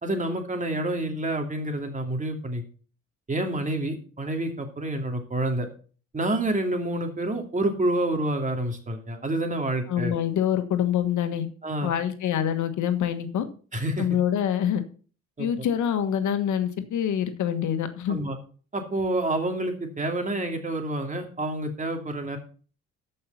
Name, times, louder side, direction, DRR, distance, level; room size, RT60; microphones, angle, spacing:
voice 1, 0.0-2.6 3.3-5.7 6.1-10.1 11.6-11.9 13.7-14.1 15.4-15.5 18.1-18.4 18.7-22.4, right 1 dB, 25° right, 4 dB, 2.8 m, -28 dB
voice 2, 9.9-11.5 11.8-13.4 14.0-14.8 15.4-18.2, left 9 dB, 75° left, 8 dB, 1.4 m, -25 dB
13.5 x 5.6 x 5.7 m, 0.40 s
cardioid pair, 90°, 30 cm